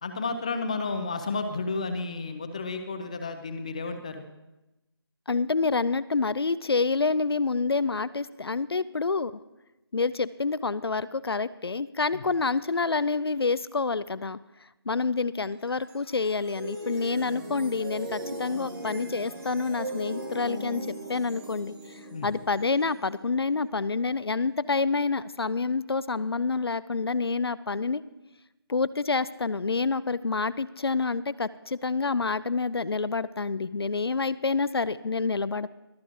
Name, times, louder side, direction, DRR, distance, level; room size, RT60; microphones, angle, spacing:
voice 1, 0.0-4.2 12.1-12.2 22.1-22.3, left 3 dB, 15° left, 7 dB, 0.5 m, -32 dB
voice 2, 5.3-9.4 9.9-14.4 14.9-28.0 28.7-35.7, left 4 dB, 70° left, 17 dB, 0.4 m, -28 dB
sound 1, 15.4-24.7, right 1 dB, 70° right, 4.0 m, -40 dB
23.0 x 8.3 x 2.5 m, 0.97 s
figure-of-eight pair, 160°, 14 cm